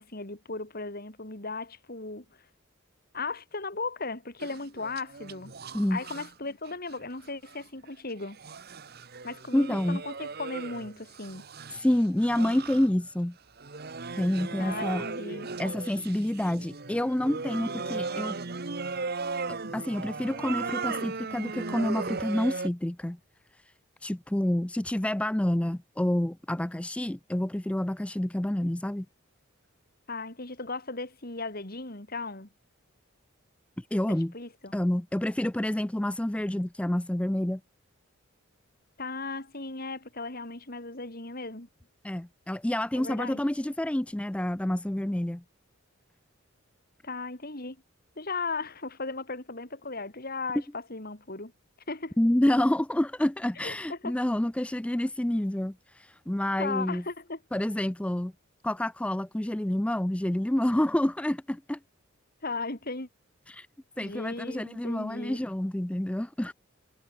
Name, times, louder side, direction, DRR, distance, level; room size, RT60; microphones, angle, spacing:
voice 1, 0.0-2.2 3.1-5.5 5.9-8.4 9.2-11.4 14.6-15.5 30.1-32.5 34.3-34.7 39.0-41.7 42.9-43.4 47.0-47.8 48.2-51.5 51.9-52.2 53.6-54.1 56.6-57.4 62.4-63.1 64.0-65.4, left 3 dB, 45° left, 3.1 m, -36 dB
sound 1, 4.4-6.3 6.7-7.6 8.2-13.1 13.6-22.7, right 4 dB, 50° right, 1.3 m, -37 dB
voice 2, 9.5-10.0 11.7-13.3 14.2-15.1 15.6-18.4 19.5-23.2 24.0-29.1 33.8-34.3 34.7-37.6 42.0-45.4 52.2-57.0 57.5-58.3 58.6-61.8 63.5-63.7 64.0-66.5, left 1 dB, 5° left, 0.4 m, -28 dB
head